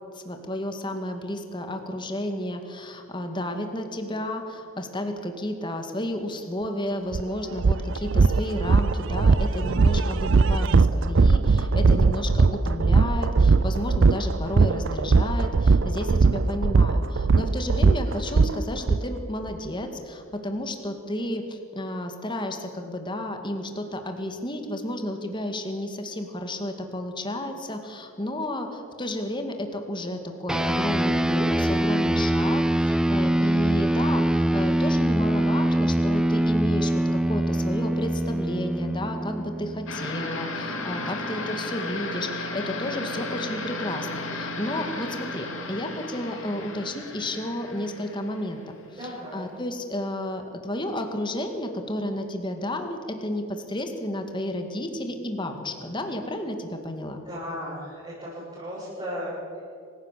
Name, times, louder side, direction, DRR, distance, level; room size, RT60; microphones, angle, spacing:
voice 1, 0.2-48.6 49.0-57.2, left 1 dB, 20° left, 5 dB, 2.2 m, -32 dB
sound 1, 7.1-7.2 7.6-19.0, right 4 dB, 60° right, 0.5 m, -20 dB
sound 2, 30.5-40.2, right 1 dB, 5° right, 0.4 m, -23 dB
sound 3, 39.9-48.9, left 2 dB, 60° left, 3.1 m, -34 dB
voice 2, 48.9-49.5 57.3-59.3, equal, 25° right, -9 dB, 7.3 m, -35 dB
25.5 x 16.0 x 7.6 m, 2.4 s
head